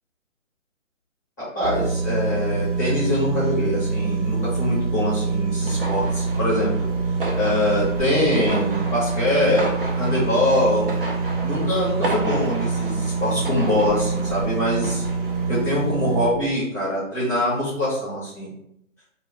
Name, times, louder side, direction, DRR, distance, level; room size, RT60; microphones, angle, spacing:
voice 1, 1.4-6.7 7.4-9.7 10.0-10.8 11.4-15.0 15.5-18.5, left 1 dB, 15° left, -9 dB, 0.7 m, -23 dB
sound 1, 1.6-16.3, right 4 dB, 65° right, 0.9 m, -25 dB
sound 2, 5.6-15.6, right 1 dB, 45° right, 0.5 m, -33 dB
2.2 x 2.2 x 3.4 m, 0.77 s
figure-of-eight pair, 155°, 40 cm